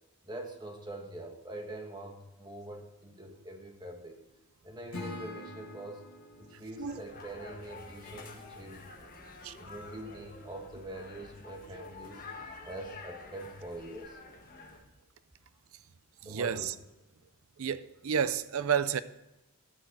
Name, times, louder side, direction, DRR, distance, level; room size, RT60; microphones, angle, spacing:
voice 1, 0.2-4.2 4.6-6.0 6.4-9.1 9.6-12.2 12.6-14.2 16.2-16.7, right 1 dB, 20° right, 1.3 m, -44 dB
Acoustic guitar / Strum, 4.9-8.1, left 1 dB, 80° left, 2.3 m, -46 dB
sound 1, 6.8-14.8, left 3 dB, 40° left, 1.6 m, -49 dB
voice 2, 16.2-16.7 17.6-19.0, right 7 dB, 70° right, 0.5 m, -30 dB
14.0 x 6.3 x 4.7 m
head